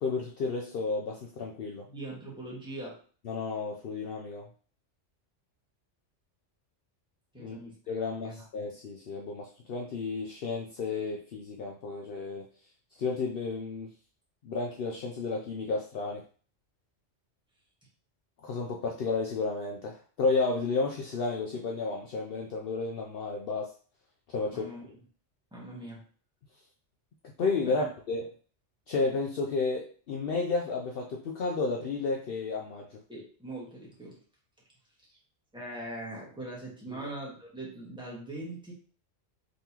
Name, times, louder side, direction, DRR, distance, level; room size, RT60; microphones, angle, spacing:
voice 1, 0.0-1.8 3.2-4.5 7.4-7.6 7.9-12.5 13.0-13.9 14.4-16.2 18.4-23.7 24.3-24.7 27.4-28.3 28.9-33.0 36.9-37.1, left 3 dB, 60° left, 0 dB, 0.7 m, -32 dB
voice 2, 1.9-3.0 7.3-7.8 8.2-8.4 24.5-24.8 25.5-26.0 27.6-27.9 33.1-34.2 35.1-35.2 35.5-38.7, right 1 dB, 5° right, -5 dB, 1.4 m, -41 dB
3.9 x 3.6 x 2.9 m, 0.42 s
omnidirectional pair, 1.2 m